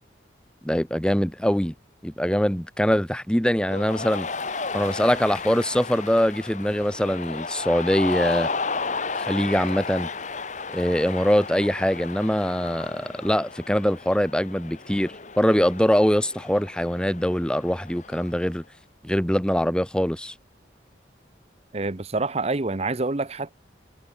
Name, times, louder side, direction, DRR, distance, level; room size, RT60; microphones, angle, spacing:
voice 1, 0.6-1.7 2.0-4.3 4.7-8.5 9.2-10.1 10.7-18.6 19.0-20.3, equal, 5° left, 1.1 m, -23 dB
Cheering, 3.6-18.5, left 4 dB, 40° left, 1.5 m, -34 dB
voice 2, 21.7-23.5, right 3 dB, 35° right, 0.8 m, -27 dB
head